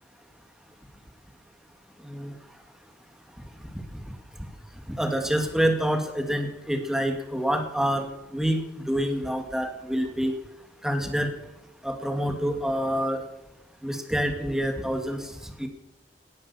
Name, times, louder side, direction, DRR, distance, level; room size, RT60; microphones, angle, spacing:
voice 1, 2.0-2.3 3.6-4.1 4.9-8.6 8.9-10.4 10.8-11.3 11.8-13.2 13.8-15.7, equal, 5° right, 5 dB, 2.3 m, -27 dB
18.5 x 11.0 x 7.1 m, 0.91 s
head